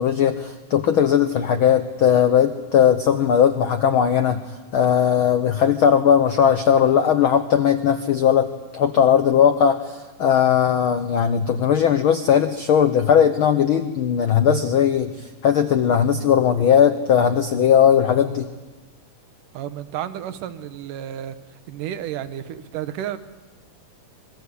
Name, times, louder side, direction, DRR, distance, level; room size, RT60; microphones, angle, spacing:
voice 1, 0.0-4.4 4.7-8.5 8.7-18.5, left 8 dB, 85° left, 9 dB, 1.1 m, -18 dB
voice 2, 19.5-21.4 21.7-23.2, right 11 dB, 80° right, 11 dB, 2.6 m, -31 dB
26.5 x 22.0 x 8.4 m, 1.2 s
omnidirectional pair, 3.7 m